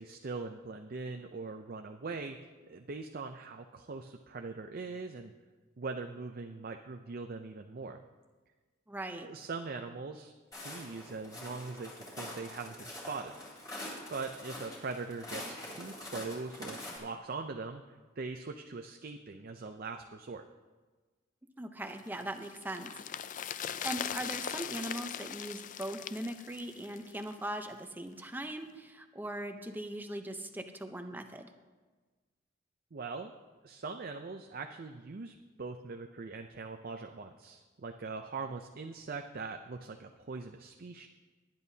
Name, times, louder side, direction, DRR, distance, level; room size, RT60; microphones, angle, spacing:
voice 1, 0.0-2.4 2.7-5.3 5.8-8.0 9.1-10.3 10.6-13.4 14.1-20.5 32.9-33.3 33.6-41.1, right 4 dB, 50° right, 5 dB, 0.5 m, -41 dB
voice 2, 8.9-9.3 21.6-23.3 23.8-31.5, right 1 dB, 10° right, 6 dB, 0.7 m, -40 dB
Walk footsteps, 10.5-17.0, left 1 dB, 20° left, 3.4 m, -45 dB
sound 1, 22.0-27.4 27.7-27.8, left 9 dB, 40° left, 0.3 m, -40 dB
19.0 x 10.5 x 2.8 m, 1.3 s
head